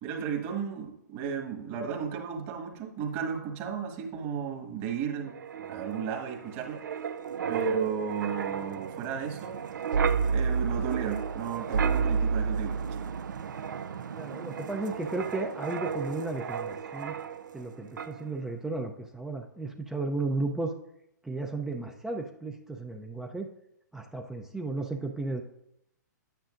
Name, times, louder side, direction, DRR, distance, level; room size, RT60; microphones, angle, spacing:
voice 1, 0.0-5.3 5.7-6.8 7.5-9.6 10.3-13.0, right 7 dB, 35° right, 3 dB, 1.7 m, -34 dB
Wind, 5.3-17.7 18.0-18.2, right 6 dB, 75° right, 0.5 m, -32 dB
voice 2, 14.1-17.1 17.5-20.7 21.2-23.5 23.9-25.4, right 2 dB, 5° right, 3 dB, 0.5 m, -34 dB
10.0 x 9.1 x 2.5 m, 0.80 s
hypercardioid pair, 130°, 10 cm